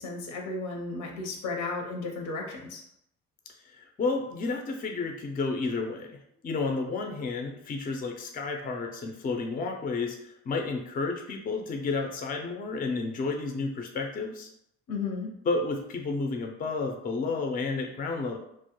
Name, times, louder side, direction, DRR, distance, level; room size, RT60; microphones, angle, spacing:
voice 1, 0.0-2.8 14.9-15.3, left 3 dB, 85° left, 1 dB, 0.7 m, -34 dB
voice 2, 3.6-14.5 15.5-18.4, left 3 dB, 30° left, 3 dB, 0.4 m, -31 dB
2.2 x 2.0 x 2.8 m, 0.75 s
cardioid pair, 90°, 30 cm